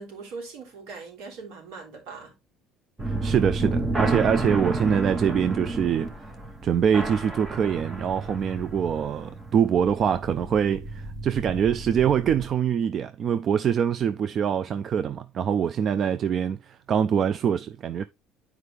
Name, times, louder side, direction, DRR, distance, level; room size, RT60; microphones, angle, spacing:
voice 1, 0.0-2.4, right 4 dB, 85° right, 3.7 m, -40 dB
sound 1, 3.0-12.5, right 2 dB, 20° right, 1.2 m, -31 dB
voice 2, 3.1-6.1 6.6-18.0, right 8 dB, 40° right, 0.4 m, -24 dB
9.5 x 4.7 x 3.3 m
cardioid pair, 130°, 0 cm